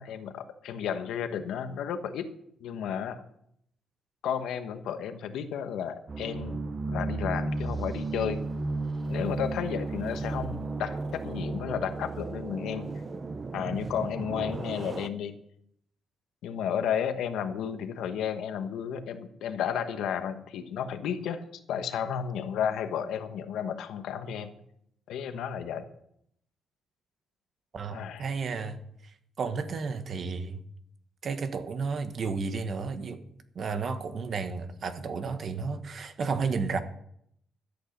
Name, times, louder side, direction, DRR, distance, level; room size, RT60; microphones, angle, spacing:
voice 1, 0.0-2.3 2.6-3.2 4.2-8.4 9.1-12.9 13.5-15.4 16.4-21.4 21.7-24.5 25.1-25.9 27.9-28.3, left 8 dB, 90° left, 1.1 m, -32 dB
sound 1, 6.1-15.1, right 3 dB, 25° right, 0.7 m, -34 dB
voice 2, 27.7-28.8 29.4-30.6 31.2-33.2 33.5-36.8, right 5 dB, 45° right, 1.2 m, -32 dB
13.5 x 8.3 x 6.6 m
cardioid pair, 135°, 0 cm